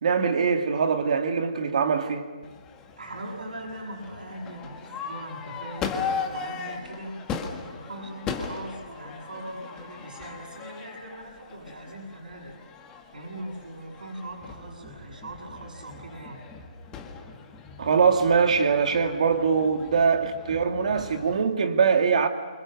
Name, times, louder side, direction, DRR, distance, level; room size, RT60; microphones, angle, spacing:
voice 1, 0.0-2.3 17.8-22.3, right 5 dB, 55° right, 2.4 m, -22 dB
Crowd / Fireworks, 2.4-21.4, left 5 dB, 15° left, 1.9 m, -38 dB
voice 2, 3.0-7.2 7.7-12.6 13.1-16.5, right 1 dB, 80° right, 7.6 m, -40 dB
28.0 x 26.0 x 6.7 m
hypercardioid pair, 155°, 5 cm